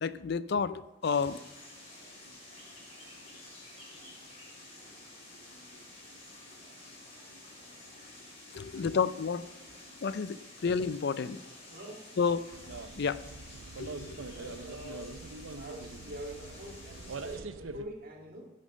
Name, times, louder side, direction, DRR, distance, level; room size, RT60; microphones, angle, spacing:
voice 1, 0.0-1.4 8.5-9.4 10.0-11.4 12.2-12.4 13.0-13.2 13.8-14.2, left 5 dB, 60° left, 16 dB, 0.5 m, -30 dB
sound 1, 1.0-17.4, left 1 dB, 35° left, 3.7 m, -51 dB
voice 2, 11.7-12.0 14.1-15.1 15.6-18.5, equal, 50° right, 0 dB, 2.2 m, -45 dB
sound 2, 12.5-17.8, right 3 dB, 85° right, 0.7 m, -43 dB
10.5 x 6.6 x 6.6 m, 1.1 s
head